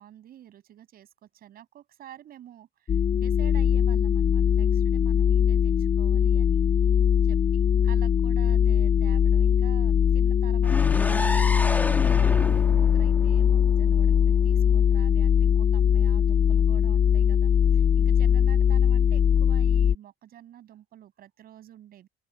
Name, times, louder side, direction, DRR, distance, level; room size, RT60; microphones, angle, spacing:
voice 1, 0.0-6.6 7.2-22.1, right 11 dB, 60° right, 7.8 m, -49 dB
sound 1, 2.9-20.0, left 8 dB, 30° left, 0.4 m, -21 dB
sound 2, 10.6-14.5, left 2 dB, 10° left, 2.0 m, -31 dB
open air
cardioid pair, 110°, 17 cm